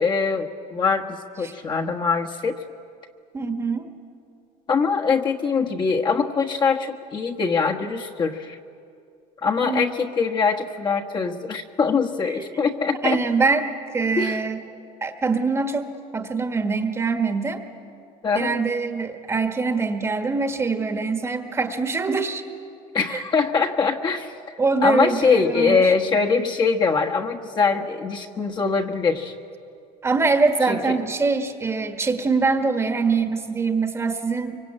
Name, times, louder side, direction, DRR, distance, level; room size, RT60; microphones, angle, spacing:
voice 1, 0.0-2.6 4.7-8.6 9.4-13.2 14.2-14.4 18.2-18.7 22.9-24.3 24.8-29.3 30.6-30.8, left 5 dB, 30° left, 2 dB, 1.4 m, -23 dB
voice 2, 3.3-3.9 9.6-10.0 12.3-12.6 13.0-14.6 15.0-17.6 18.3-22.4 23.1-23.2 24.6-25.9 30.0-34.6, right 4 dB, 20° right, 6 dB, 1.5 m, -24 dB
24.5 x 24.0 x 8.8 m, 2.4 s
cardioid pair, 145°, 15 cm